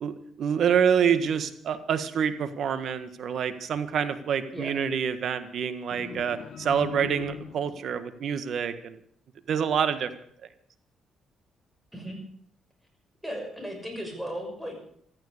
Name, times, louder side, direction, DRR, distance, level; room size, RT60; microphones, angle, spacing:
voice 1, 0.0-9.0 9.5-10.1, right 7 dB, 65° right, 11 dB, 1.6 m, -27 dB
sound 1, 5.9-7.9, left 8 dB, 65° left, 0.7 m, -41 dB
voice 2, 13.2-14.8, equal, 5° right, 3 dB, 6.3 m, -36 dB
15.0 x 14.0 x 6.7 m, 0.64 s
cardioid pair, 90°, 0 cm